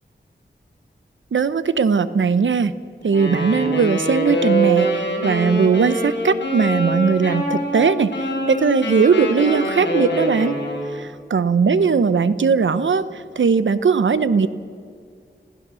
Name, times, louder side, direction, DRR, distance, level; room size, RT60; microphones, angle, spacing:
voice 1, 1.3-2.7 3.0-8.1 8.5-10.5 11.3-13.1 13.4-14.5, right 5 dB, 80° right, 14 dB, 0.8 m, -18 dB
Wind instrument woodwind instrument, 3.1-11.0, right 1 dB, 65° left, 5.3 m, -24 dB
26.5 x 15.5 x 6.3 m, 2.3 s
cardioid pair, 50°, 19 cm